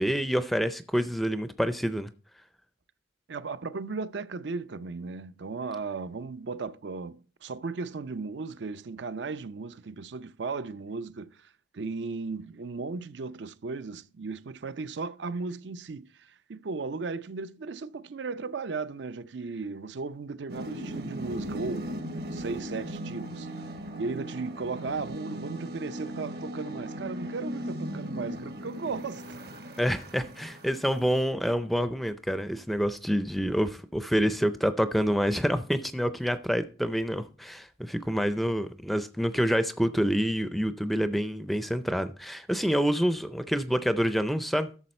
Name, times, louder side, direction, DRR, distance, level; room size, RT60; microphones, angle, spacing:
voice 1, 0.0-2.1 29.8-44.7, equal, ahead, 0.4 m, -27 dB
voice 2, 3.3-11.5 11.7-22.0 22.3-23.5 24.0-29.4, right 4 dB, 75° right, 0.5 m, -36 dB
sound 1, 20.5-31.2, equal, 55° right, 1.2 m, -38 dB
12.0 x 7.0 x 4.2 m
head